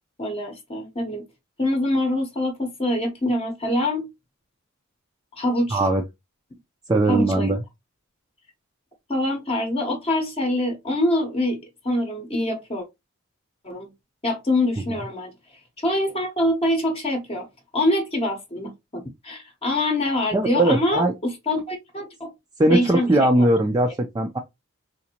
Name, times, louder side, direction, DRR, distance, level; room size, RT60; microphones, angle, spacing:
voice 1, 0.2-1.2 1.6-4.1 5.3-5.8 7.1-7.6 9.1-11.6 11.8-12.8 13.6-13.9 14.2-15.3 15.8-17.5 17.7-22.3 22.7-23.3, left 1 dB, 25° left, 0.8 m, -24 dB
voice 2, 5.7-6.0 6.9-7.6 20.3-21.1 22.6-24.4, right 1 dB, 15° right, 0.3 m, -20 dB
3.7 x 2.6 x 2.8 m
head